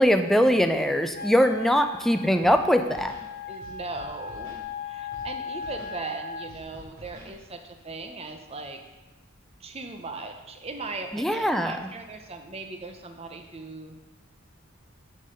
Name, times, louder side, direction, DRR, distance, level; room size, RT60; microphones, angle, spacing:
voice 1, 0.0-3.1 11.1-11.7, equal, ahead, 7 dB, 0.4 m, -21 dB
Wind instrument woodwind instrument, 1.1-6.5, left 4 dB, 45° left, 0.8 m, -37 dB
Scratching (performance technique), 2.4-2.6 2.9-3.3 3.6-4.6 5.1-5.3 5.6-6.0 6.5-7.3, equal, 80° right, 2.6 m, -47 dB
voice 2, 3.5-8.8 9.6-14.0, right 3 dB, 30° right, 5 dB, 0.7 m, -38 dB
10.0 x 3.9 x 5.4 m, 1.1 s
head